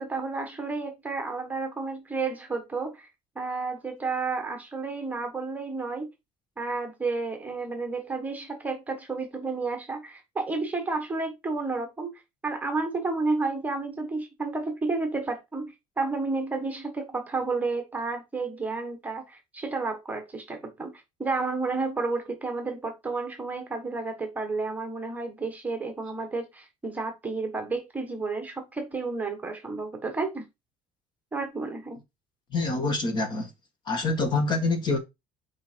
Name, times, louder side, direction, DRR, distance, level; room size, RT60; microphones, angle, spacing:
voice 1, 0.0-3.1 3.3-6.1 6.6-12.1 12.4-20.9 21.2-30.5 31.3-32.0, right 3 dB, 10° right, 1.3 m, -31 dB
voice 2, 32.5-33.5 33.9-35.0, left 3 dB, 30° left, 1.7 m, -26 dB
5.7 x 4.7 x 4.5 m
cardioid pair, 175°, 15 cm